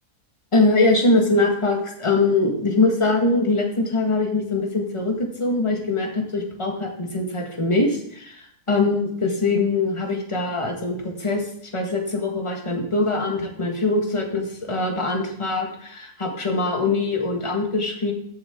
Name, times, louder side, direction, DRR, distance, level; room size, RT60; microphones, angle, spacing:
voice 1, 0.5-11.5 11.7-18.1, left 3 dB, 20° left, 2 dB, 1.6 m, -22 dB
14.5 x 7.5 x 3.7 m, 0.66 s
omnidirectional pair, 1.7 m